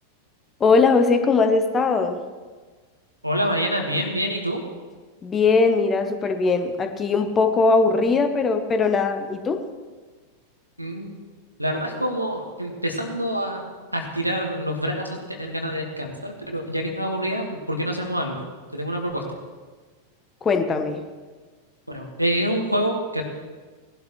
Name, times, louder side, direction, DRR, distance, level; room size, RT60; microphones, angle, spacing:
voice 1, 0.6-2.2 5.2-9.6 20.4-21.0, left 4 dB, 20° left, 7 dB, 1.1 m, -20 dB
voice 2, 3.2-4.6 10.8-11.1 11.6-13.6 13.9-18.4 18.7-19.2 21.9-23.2, equal, 90° right, 2 dB, 1.8 m, -26 dB
18.5 x 11.5 x 3.2 m, 1.4 s
figure-of-eight pair, 90°, 0 cm